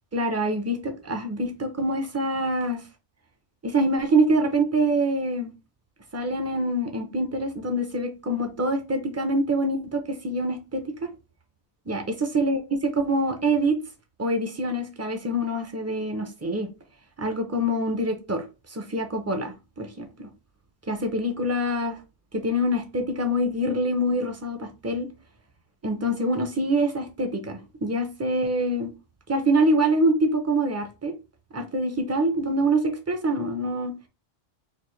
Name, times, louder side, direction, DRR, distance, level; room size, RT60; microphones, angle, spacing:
voice 1, 0.1-2.8 3.6-5.5 6.1-11.1 11.9-12.0 12.3-13.8 14.2-16.7 17.2-20.3 20.9-22.0 22.3-25.1 25.8-28.9 29.3-31.1 31.5-33.9, right 1 dB, 20° right, 0.4 m, -25 dB
4.2 x 2.5 x 3.1 m
omnidirectional pair, 1.2 m